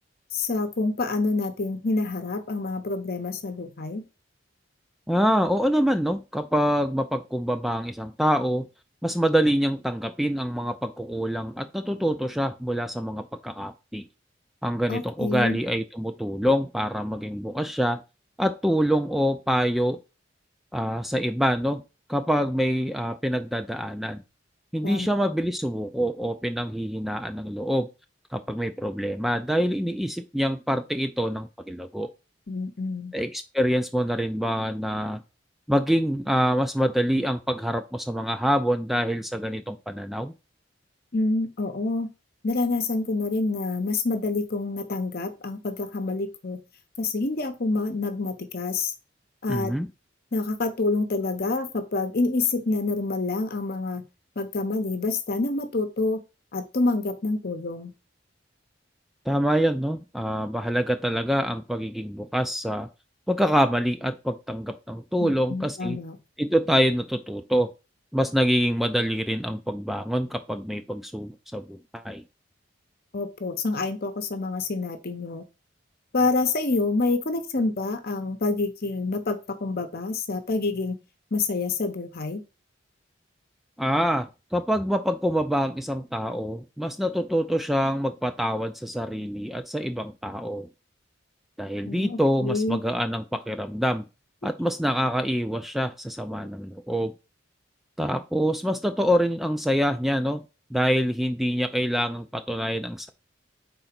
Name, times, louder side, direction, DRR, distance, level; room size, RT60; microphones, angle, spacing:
voice 1, 0.3-4.0 14.9-15.6 24.8-25.1 32.5-33.1 41.1-42.1 42.4-46.6 47.0-48.9 49.4-49.7 50.3-54.1 54.4-56.2 56.5-57.9 65.2-66.2 73.1-75.4 76.1-81.0 81.3-82.4 91.8-92.8, left 3 dB, 55° left, 8 dB, 0.9 m, -27 dB
voice 2, 5.1-8.7 9.0-14.1 14.6-18.0 18.4-20.0 20.7-21.8 22.1-24.2 24.7-27.9 28.3-32.1 33.1-35.2 35.7-40.3 49.5-49.9 59.3-62.9 63.3-66.0 66.4-67.7 68.1-72.2 83.8-90.7 91.6-94.0 94.4-97.1 98.0-100.4 100.7-103.1, equal, ahead, 8 dB, 0.3 m, -26 dB
4.9 x 3.9 x 5.8 m, 0.29 s
head